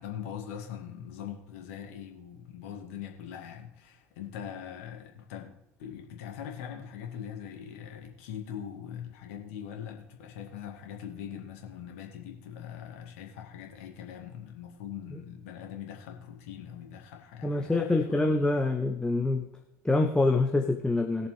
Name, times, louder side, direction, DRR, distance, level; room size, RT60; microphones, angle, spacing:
voice 1, 0.0-5.5 5.8-18.6, left 9 dB, 70° left, 2 dB, 2.1 m, -42 dB
voice 2, 17.4-19.5 19.8-21.3, left 2 dB, 10° left, 3 dB, 1.1 m, -25 dB
20.5 x 7.0 x 3.3 m, 0.83 s
figure-of-eight pair, 60°, 8 cm